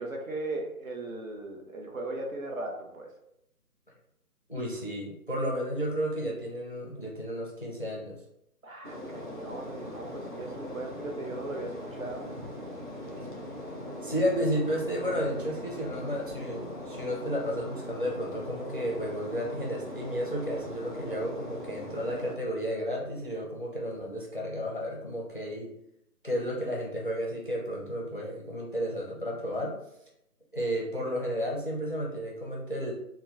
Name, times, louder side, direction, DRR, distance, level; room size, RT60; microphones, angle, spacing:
voice 1, 0.0-3.1 8.6-12.3, right 2 dB, 60° right, 1 dB, 0.9 m, -38 dB
voice 2, 4.5-8.2 14.0-25.7 26.2-29.8 30.5-32.9, equal, 35° left, -1 dB, 0.5 m, -32 dB
sound 1, 8.8-22.4, equal, 35° right, 0.5 m, -40 dB
4.1 x 2.2 x 3.4 m, 0.79 s
figure-of-eight pair, 160°, 47 cm